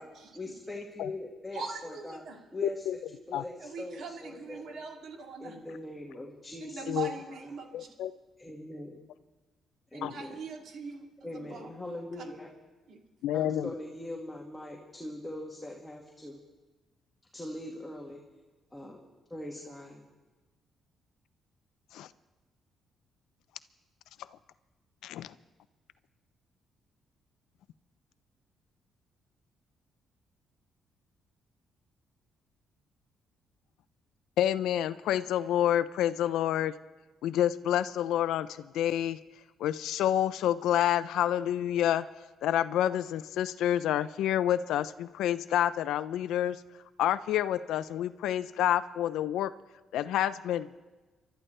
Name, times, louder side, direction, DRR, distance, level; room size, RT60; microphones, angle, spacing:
voice 1, 0.3-2.2 2.5-3.0 3.3-4.8 5.4-7.0 8.4-9.0 9.9-10.4 11.2-12.5 13.3-16.4 17.3-18.2 18.7-19.0 19.3-20.0, left 1 dB, 10° left, -2 dB, 2.0 m, -41 dB
voice 2, 1.5-2.4 3.6-5.5 6.6-7.9 9.9-11.7 12.2-12.3 12.9-13.0, right 4 dB, 70° right, 1 dB, 2.8 m, -41 dB
voice 3, 7.7-8.1 10.0-10.1 13.2-13.7 21.9-22.1 25.0-25.3 34.4-36.7 37.2-38.5 38.7-39.2 39.6-42.0 42.4-46.6 47.0-49.5 49.9-50.8, left 11 dB, 85° left, 15 dB, 0.5 m, -28 dB
29.5 x 12.5 x 3.3 m, 1.2 s
cardioid pair, 90°, 0 cm